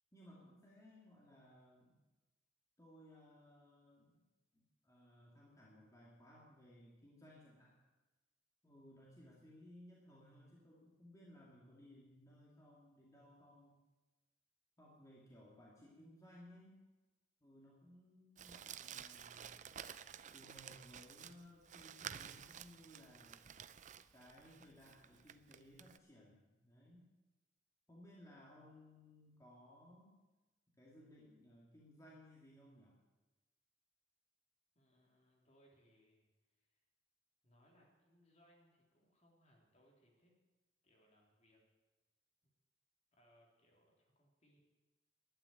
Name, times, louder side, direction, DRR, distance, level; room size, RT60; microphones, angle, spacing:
voice 1, 0.1-2.0 2.8-4.2 4.5-7.7 8.6-13.8 14.8-16.8 17.4-19.7 20.3-23.5 24.1-27.1 27.9-30.2 30.8-32.9, equal, 20° left, -5 dB, 2.3 m, -61 dB
Crumpling crinkling, 18.4-26.0, right 8 dB, 45° right, 0.5 m, -52 dB
voice 2, 34.8-36.3 36.5-36.8 37.4-40.4 40.8-41.6 42.4-42.5 43.1-44.6, equal, 40° left, -1 dB, 3.4 m, -71 dB
12.0 x 9.1 x 9.2 m, 1.2 s
head